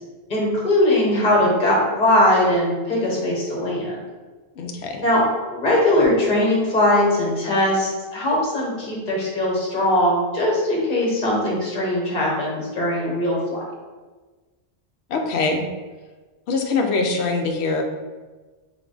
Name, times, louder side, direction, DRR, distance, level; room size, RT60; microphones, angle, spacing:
voice 1, 0.3-3.9 5.0-5.2 5.5-13.6, left 1 dB, 45° left, -4 dB, 1.4 m, -20 dB
voice 2, 4.6-5.0 15.1-15.6 16.5-17.8, left 3 dB, 85° left, 3 dB, 0.9 m, -23 dB
3.6 x 3.5 x 3.8 m, 1.3 s
omnidirectional pair, 1.1 m